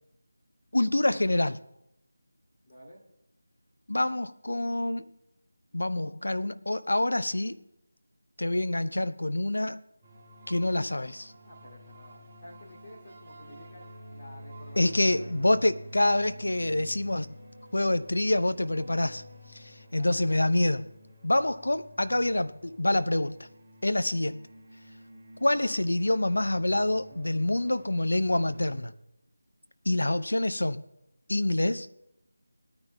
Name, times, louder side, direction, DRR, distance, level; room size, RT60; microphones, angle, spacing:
voice 1, 0.7-1.6 3.9-5.1 5.7-7.6 8.4-9.8 10.5-11.3 14.8-17.3 17.7-19.2 19.5-20.9 21.2-23.3 23.8-24.5 25.4-28.9 29.9-30.8 31.3-31.9, left 1 dB, 70° left, 0.6 m, -26 dB
voice 2, 2.7-3.0 11.4-15.5 19.9-20.4, equal, 30° left, 2.8 m, -51 dB
sound 1, 10.0-28.8, equal, 10° right, 2.7 m, -49 dB
20.5 x 9.7 x 2.3 m
figure-of-eight pair, 165°, 0 cm